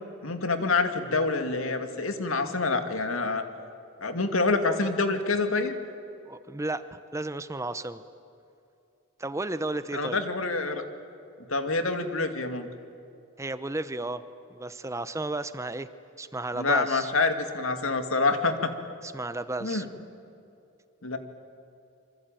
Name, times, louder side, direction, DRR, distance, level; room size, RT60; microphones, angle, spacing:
voice 1, 0.2-3.4 4.0-5.8 9.9-10.8 11.5-12.7 16.6-18.7 19.6-19.9 21.0-21.2, left 3 dB, 75° left, 7 dB, 2.3 m, -26 dB
voice 2, 6.3-8.0 9.2-10.2 13.4-14.2 14.5-15.9 16.2-17.1 19.0-19.9, right 2 dB, 15° right, 12 dB, 0.7 m, -33 dB
26.5 x 24.5 x 9.1 m, 2.6 s
head